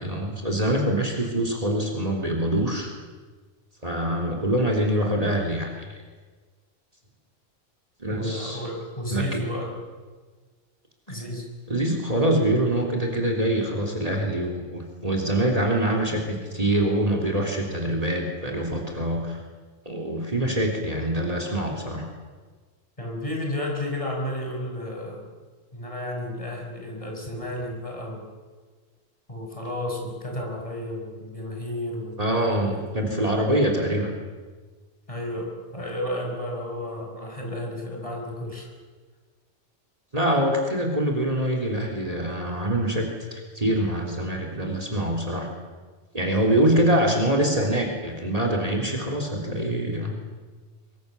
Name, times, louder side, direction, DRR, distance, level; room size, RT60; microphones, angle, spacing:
voice 1, 0.0-2.9 3.8-5.7 8.0-8.6 9.1-9.4 11.7-19.4 19.9-22.1 32.2-34.1 40.1-45.5 46.1-50.1, right 1 dB, 30° right, 2 dB, 3.5 m, -24 dB
voice 2, 8.1-9.8 11.1-11.5 23.0-25.3 25.7-28.3 29.3-33.3 35.1-38.7, left 1 dB, 25° left, 0 dB, 5.6 m, -32 dB
24.0 x 23.5 x 7.1 m, 1.4 s
omnidirectional pair, 1.2 m